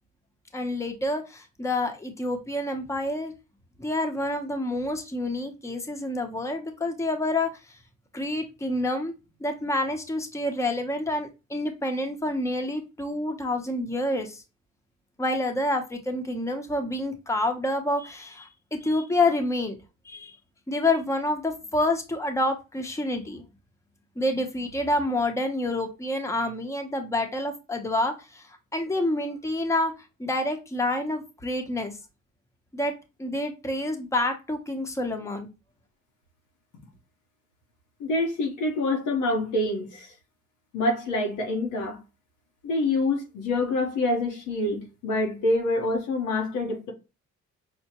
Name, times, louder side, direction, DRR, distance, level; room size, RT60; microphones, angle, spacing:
voice 1, 0.5-3.3 3.8-7.5 8.1-9.1 9.4-14.4 15.2-19.8 20.0-20.4 20.7-23.4 24.2-29.9 30.2-32.0 32.7-32.9 33.2-35.5, left 1 dB, 10° left, 0.8 m, -28 dB
voice 2, 38.0-40.1 40.7-42.0 42.6-46.9, left 2 dB, 90° left, 1.1 m, -26 dB
5.5 x 2.1 x 2.9 m
cardioid pair, 90°, 30 cm